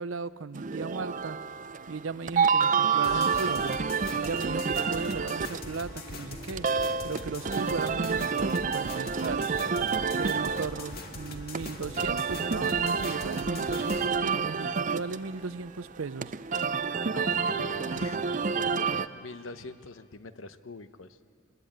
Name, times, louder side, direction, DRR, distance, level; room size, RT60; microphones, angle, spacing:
voice 1, 0.0-1.4 1.9-3.8 4.2-6.7 7.0-9.5 10.2-16.3, right 4 dB, 80° right, 16 dB, 0.6 m, -36 dB
sound 1, 0.5-19.1, right 5 dB, 40° right, 0.5 m, -29 dB
sound 2, 3.0-14.1, left 2 dB, 50° left, 1.9 m, -42 dB
voice 2, 16.9-21.2, left 2 dB, 85° left, 11 dB, 1.0 m, -43 dB
23.5 x 21.0 x 9.0 m, 2.3 s
head